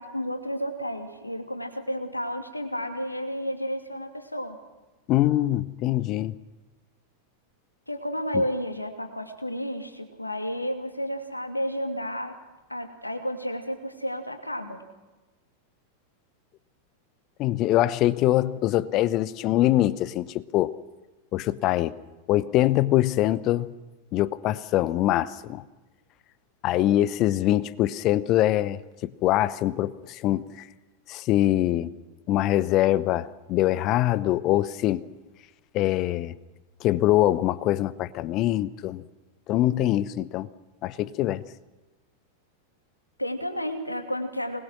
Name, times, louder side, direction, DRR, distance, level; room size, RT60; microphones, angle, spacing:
voice 1, 0.0-4.6 7.9-12.3 12.7-14.8 43.2-44.6, equal, 85° left, 2.6 m, -31 dB
voice 2, 5.1-6.4 8.3-8.4 17.4-20.8 21.3-22.0 22.3-23.7 24.1-25.6 26.6-30.7 31.1-31.9 32.3-35.1 35.7-36.3 36.8-39.0 39.5-40.5 40.8-41.4, left 14 dB, 40° left, 0.9 m, -23 dB
25.5 x 21.0 x 6.3 m
figure-of-eight pair, 90°, 0 cm